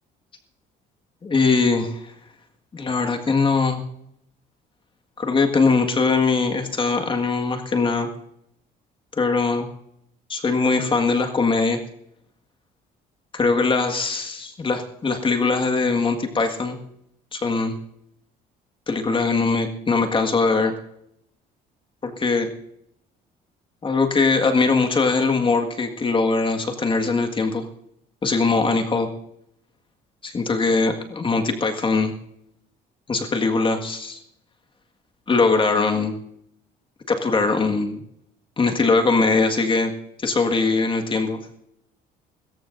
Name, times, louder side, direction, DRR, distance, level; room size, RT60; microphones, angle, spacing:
voice 1, 1.2-2.1 2.7-3.8 5.2-8.1 9.2-9.7 10.3-11.8 13.3-16.8 17.3-17.7 18.9-20.7 22.0-22.5 23.8-27.6 28.2-29.1 30.2-32.1 33.1-34.2 35.3-36.1 37.1-38.0 38.6-39.9 40.2-41.4, left 4 dB, 30° left, 4 dB, 1.8 m, -21 dB
22.5 x 14.0 x 2.6 m, 0.74 s
cardioid pair, 110°, 17 cm